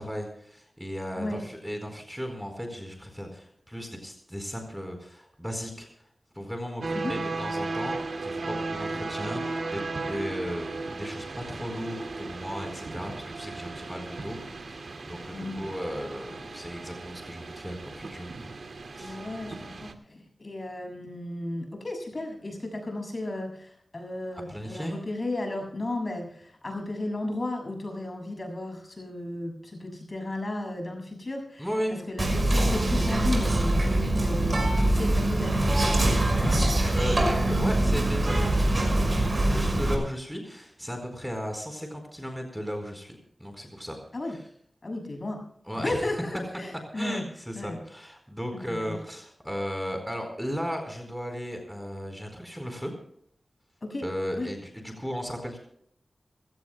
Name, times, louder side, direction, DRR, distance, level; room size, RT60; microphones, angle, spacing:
voice 1, 0.0-5.9 6.3-18.3 18.9-19.2 24.5-25.0 31.6-32.1 36.4-36.6 36.9-44.0 44.3-44.4 45.7-46.1 46.9-52.9 54.0-55.6, equal, ahead, 4 dB, 4.4 m, -36 dB
sound 1, 6.8-19.9, right 3 dB, 75° right, 2.2 m, -36 dB
voice 2, 15.3-15.7 19.0-31.7 32.1-36.1 37.4-37.9 44.1-44.4 44.8-45.4 45.8-47.2 47.6-47.8 48.5-49.0 53.8-54.0 54.4-54.5, left 2 dB, 45° left, 2 dB, 6.8 m, -34 dB
Whispering, 32.2-39.9, right 1 dB, 45° right, 5.7 m, -23 dB
26.5 x 16.5 x 2.3 m, 0.68 s
wide cardioid pair, 60°, 0 cm